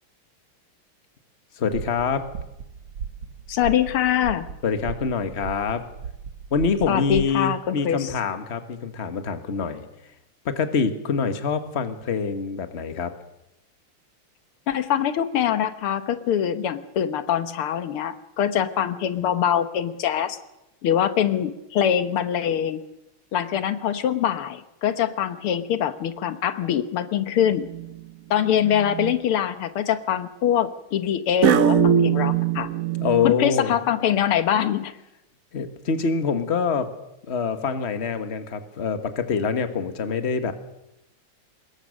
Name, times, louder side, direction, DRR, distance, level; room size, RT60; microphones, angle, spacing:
voice 1, 1.6-2.3 4.6-5.8 6.5-9.8 10.4-13.1 33.0-33.7 35.5-36.9 37.3-40.5, left 5 dB, 35° left, 9 dB, 1.6 m, -25 dB
sound 1, 1.7-7.4, right 7 dB, 75° right, 2.1 m, -37 dB
voice 2, 3.5-4.5 6.9-8.1 14.7-20.4 20.8-22.8 23.3-27.7 28.3-32.7 33.2-34.9, left 9 dB, 85° left, 11 dB, 2.0 m, -23 dB
sound 2, 27.5-28.0 28.6-29.1 31.4-33.3, right 8 dB, 50° right, 1.1 m, -21 dB
24.5 x 21.0 x 6.5 m, 0.89 s
omnidirectional pair, 2.4 m